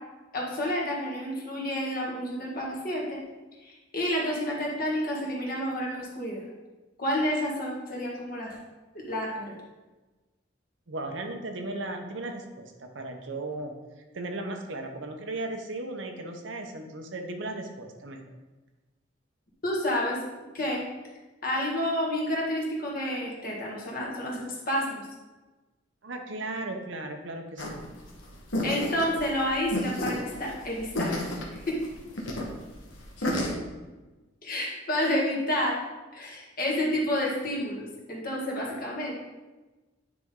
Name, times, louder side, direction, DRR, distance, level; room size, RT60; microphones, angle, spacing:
voice 1, 0.3-3.2 3.6-6.4 7.0-8.6 9.1-9.6 19.6-20.2 20.5-20.9 21.4-25.1 28.6-31.2 31.7-31.8 34.4-35.8 36.1-39.1, left 1 dB, 50° left, -3 dB, 1.8 m, -29 dB
voice 2, 10.9-13.7 14.1-18.2 26.0-27.8, right 2 dB, 75° right, 4 dB, 0.9 m, -36 dB
sound 1, 27.6-33.5, left 1 dB, 85° left, 1.3 m, -32 dB
9.4 x 4.1 x 3.7 m, 1.2 s
head